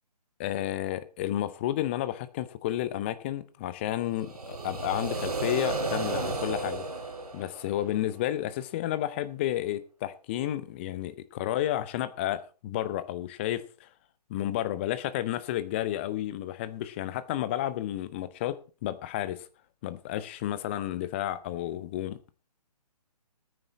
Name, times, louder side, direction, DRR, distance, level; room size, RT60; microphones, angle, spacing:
voice 1, 0.4-6.8 7.3-13.9 14.3-19.5 19.8-22.2, left 13 dB, 20° left, 0.6 m, -31 dB
sound 1, 4.1-8.1, right 3 dB, 65° right, 2.6 m, -33 dB
14.0 x 9.4 x 4.1 m
figure-of-eight pair, 140°, 21 cm